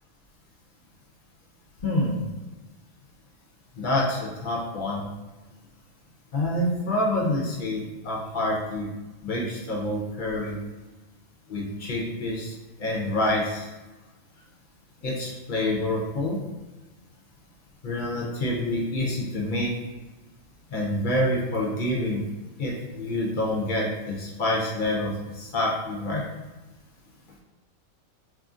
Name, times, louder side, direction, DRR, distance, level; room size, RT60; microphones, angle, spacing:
voice 1, 1.8-2.2 3.8-5.0 6.3-8.9 9.2-10.6 11.5-12.5 12.8-13.7 15.0-16.4 17.8-19.7 20.7-22.2 22.6-26.2, left 1 dB, 60° left, -3 dB, 0.5 m, -27 dB
2.7 x 2.5 x 2.4 m, 1.1 s
omnidirectional pair, 1.4 m